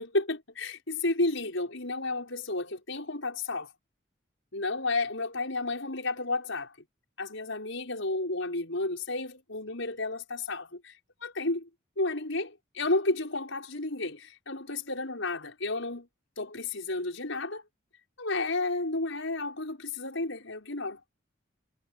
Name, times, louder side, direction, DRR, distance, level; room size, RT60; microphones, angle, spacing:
voice 1, 0.0-3.7 4.5-6.7 7.2-10.9 11.2-11.7 12.0-16.1 16.4-17.6 18.2-21.0, left 2 dB, 80° left, 5.9 m, -32 dB
head